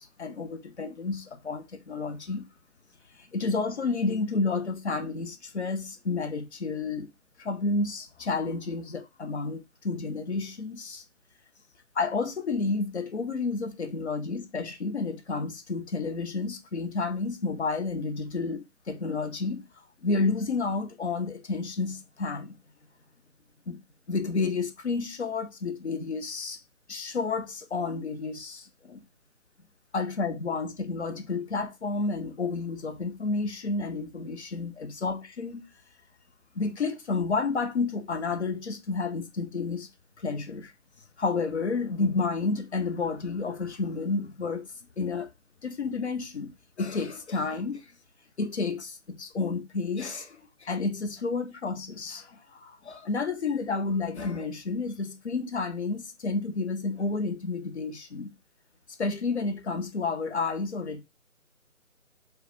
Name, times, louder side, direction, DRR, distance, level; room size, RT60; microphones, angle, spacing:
voice 1, 0.0-2.4 3.2-7.1 7.4-11.0 12.0-19.7 20.0-22.6 23.7-23.8 24.1-26.6 26.9-29.0 29.9-35.6 36.6-39.9 40.2-40.7 41.2-44.7 45.0-45.3 45.6-46.5 46.8-47.9 48.4-58.3 59.0-61.0, left 4 dB, 50° left, 0.5 m, -30 dB
2.3 x 2.0 x 3.1 m
figure-of-eight pair, 155°, 43 cm